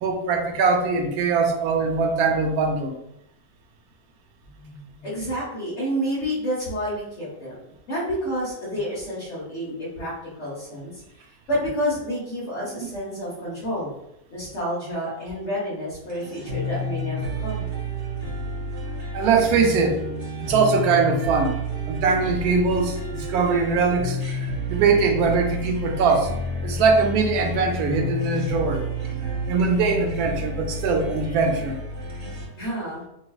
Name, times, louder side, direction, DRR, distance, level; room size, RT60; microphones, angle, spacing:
voice 1, 0.0-3.0 19.1-20.0 20.4-21.6 21.9-26.3 26.6-28.8 29.5-31.8, right 4 dB, 90° right, 5 dB, 1.1 m, -22 dB
voice 2, 4.5-7.6 7.9-13.9 14.3-17.7 32.5-33.0, equal, 55° left, -9 dB, 1.3 m, -29 dB
sound 1, 16.1-32.4, equal, 50° right, 1.1 m, -30 dB
4.0 x 2.7 x 2.3 m, 0.82 s
omnidirectional pair, 1.6 m